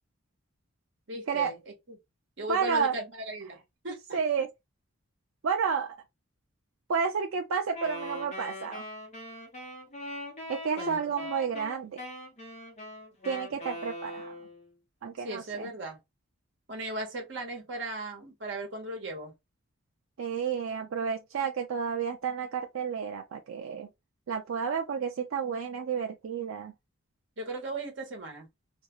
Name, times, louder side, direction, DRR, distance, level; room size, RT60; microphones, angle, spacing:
voice 1, 1.1-1.6 2.4-3.6 3.8-4.2 10.8-11.1 15.2-16.0 16.7-19.3 27.4-28.5, right 1 dB, 60° right, 1.0 m, -36 dB
voice 2, 2.5-2.9 4.1-4.5 5.4-6.0 6.9-8.8 10.5-12.0 13.2-14.3 15.0-15.7 20.2-23.9 24.3-26.7, right 6 dB, 85° right, 0.4 m, -31 dB
Wind instrument woodwind instrument, 7.7-14.7, left 1 dB, 35° left, 1.0 m, -41 dB
2.5 x 2.3 x 3.0 m
head